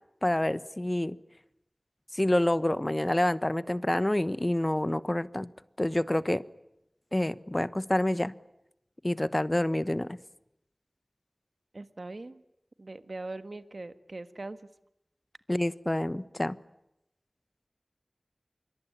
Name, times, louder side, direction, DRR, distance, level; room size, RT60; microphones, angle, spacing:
voice 1, 0.2-1.2 2.1-5.5 5.8-6.4 7.1-8.3 9.0-10.2 15.5-16.6, left 1 dB, 30° left, 16 dB, 1.1 m, -27 dB
voice 2, 11.7-12.4 12.8-14.7, right 2 dB, 70° right, 11 dB, 1.5 m, -41 dB
26.0 x 23.5 x 9.9 m, 0.84 s
wide cardioid pair, 40°, 0 cm